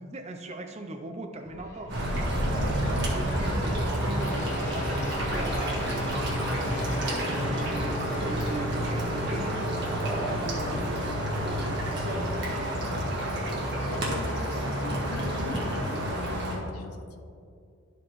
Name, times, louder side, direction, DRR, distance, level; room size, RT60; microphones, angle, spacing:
voice 1, 0.0-1.9 2.9-9.6 10.1-12.7, right 2 dB, 30° right, 5 dB, 0.5 m, -40 dB
sound 1, 1.4-8.2, left 1 dB, 50° left, 1.4 m, -42 dB
sound 2, 1.9-16.6, right 1 dB, 50° right, 1.6 m, -29 dB
voice 2, 2.7-3.2 13.9-17.2, left 3 dB, 85° left, 6 dB, 0.7 m, -41 dB
sound 3, 4.2-13.9, left 2 dB, 35° left, 1.3 m, -38 dB
12.5 x 5.0 x 3.1 m, 2.4 s
head